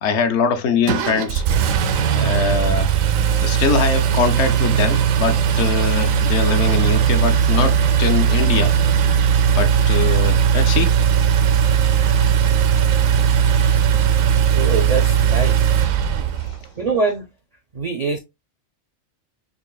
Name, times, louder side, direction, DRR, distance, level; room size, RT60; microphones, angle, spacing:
voice 1, 0.0-1.4 2.2-2.9 3.4-8.7 9.6-10.9 16.4-16.6, left 5 dB, 65° left, 0.9 m, -22 dB
Engine, 0.9-16.6, right 8 dB, 90° right, 1.0 m, -18 dB
voice 2, 14.5-15.7 16.8-17.3 17.7-18.2, right 4 dB, 60° right, 0.4 m, -23 dB
5.2 x 2.7 x 2.3 m
omnidirectional pair, 1.3 m